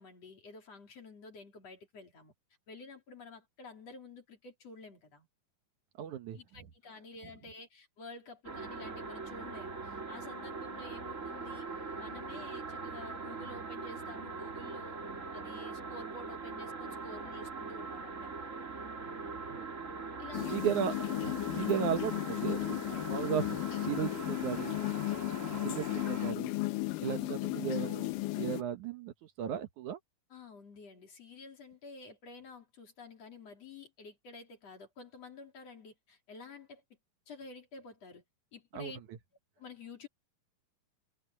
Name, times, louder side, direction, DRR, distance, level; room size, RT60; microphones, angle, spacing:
voice 1, 0.0-2.3 2.7-5.3 6.3-11.7 12.0-15.0 15.3-18.5 20.2-20.6 27.0-27.5 30.3-36.8 37.3-38.2 38.5-39.0 39.6-40.1, left 3 dB, 45° left, 4.7 m, -50 dB
voice 2, 6.0-6.4 19.5-19.6 20.4-24.8 25.6-26.5 27.0-30.0 38.7-38.9, right 9 dB, 65° right, 2.3 m, -36 dB
sound 1, 8.4-26.3, right 4 dB, 25° right, 2.3 m, -42 dB
sound 2, 20.3-28.6, left 19 dB, 75° left, 2.2 m, -35 dB
omnidirectional pair, 4.2 m